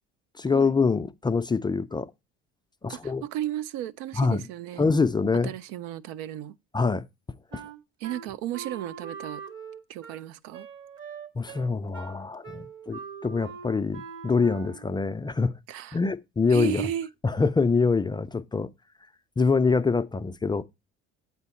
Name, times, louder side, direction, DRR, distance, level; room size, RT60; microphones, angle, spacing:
voice 1, 0.4-2.1 2.8-3.2 4.2-4.4 4.8-5.5 6.7-7.0 11.4-15.5 15.9-16.9 17.2-18.7 19.4-20.6, left 4 dB, 15° left, 0.4 m, -25 dB
voice 2, 2.9-4.9 5.4-6.6 8.0-9.4 9.9-10.7 15.7-16.0 16.5-17.1, right 12 dB, 70° right, 0.5 m, -34 dB
Wind instrument woodwind instrument, 7.5-15.0, right 7 dB, 40° right, 1.0 m, -42 dB
8.2 x 4.5 x 4.2 m
hypercardioid pair, 70°, 32 cm